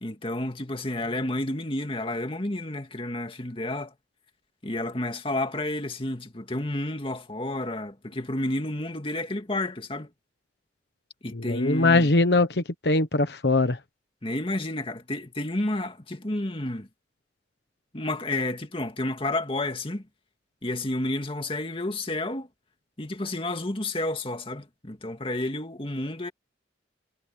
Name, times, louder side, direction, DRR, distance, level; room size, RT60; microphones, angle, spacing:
voice 1, 0.0-3.9 4.6-10.1 11.2-12.1 14.2-16.9 17.9-20.1 20.6-22.5 23.0-26.3, left 1 dB, 30° left, 2.2 m, -30 dB
voice 2, 11.3-13.8, left 2 dB, 65° left, 1.2 m, -22 dB
head